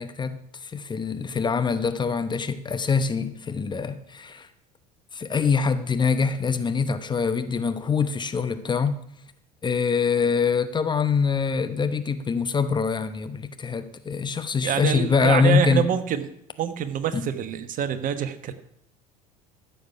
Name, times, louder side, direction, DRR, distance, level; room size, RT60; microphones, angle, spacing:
voice 1, 0.0-4.5 5.1-8.9 9.6-15.9 17.1-17.3, left 5 dB, 20° left, 10 dB, 0.9 m, -24 dB
voice 2, 14.6-16.3 16.6-18.5, right 9 dB, 40° right, 11 dB, 1.2 m, -26 dB
14.5 x 7.0 x 5.7 m, 0.72 s
figure-of-eight pair, 70°, 21 cm